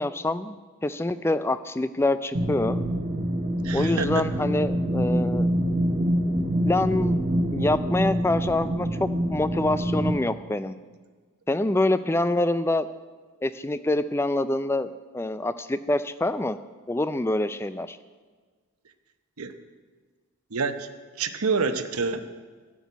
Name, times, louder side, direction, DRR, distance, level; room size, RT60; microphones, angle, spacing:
voice 1, 0.0-2.8 3.7-5.5 6.6-7.2 7.5-10.8 11.5-12.9 13.4-16.6 16.9-18.0, left 2 dB, 10° left, 13 dB, 0.3 m, -26 dB
sound 1, 2.3-10.1, equal, 30° right, 1.2 m, -25 dB
voice 2, 3.6-4.3 19.4-19.5 20.5-20.9 21.2-22.2, right 4 dB, 90° right, 9 dB, 0.9 m, -27 dB
12.0 x 6.2 x 9.5 m, 1.5 s
head